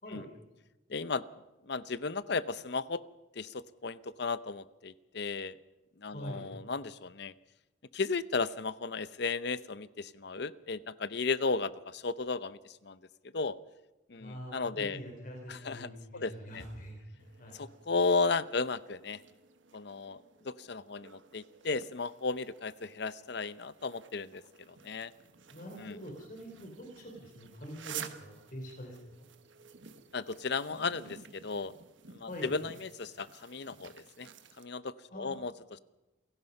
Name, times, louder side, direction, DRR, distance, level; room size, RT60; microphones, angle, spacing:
voice 1, 0.9-1.2 1.7-3.0 3.3-5.6 6.0-7.3 7.9-13.0 13.3-13.6 14.1-15.0 15.5-16.6 17.5-19.2 19.7-25.1 25.8-26.0 30.1-31.7 32.1-34.3 34.6-35.8, left 4 dB, 60° left, 16 dB, 0.7 m, -35 dB
voice 2, 6.1-6.5 14.2-17.0 17.4-17.6 25.5-29.2 32.2-32.5 35.1-35.3, equal, 45° left, 1 dB, 4.1 m, -44 dB
sound 1, 17.2-34.6, right 8 dB, 75° right, 1.3 m, -52 dB
28.0 x 17.5 x 5.5 m, 1.0 s
head